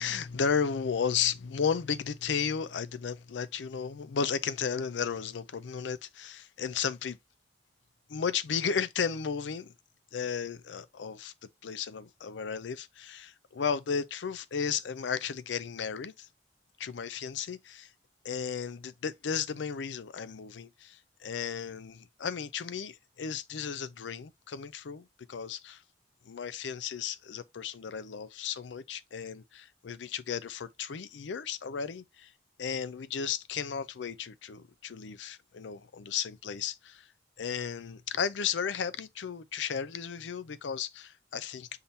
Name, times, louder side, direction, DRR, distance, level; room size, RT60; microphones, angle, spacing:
voice 1, 0.0-7.2 8.1-9.7 10.1-11.3 11.6-16.3 16.8-17.9 18.2-25.8 26.2-32.3 32.6-37.1 37.4-41.7, left 6 dB, 85° left, 0.5 m, -34 dB
5.6 x 3.5 x 2.6 m
head